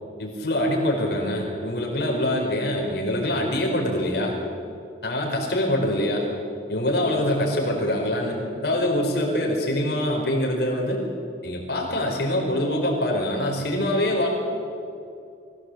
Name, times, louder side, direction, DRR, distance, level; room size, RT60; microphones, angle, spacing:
voice 1, 0.2-4.3 5.0-6.3 6.7-11.0 11.4-14.3, left 1 dB, 60° left, -1 dB, 4.8 m, -24 dB
24.0 x 16.5 x 7.9 m, 2.5 s
head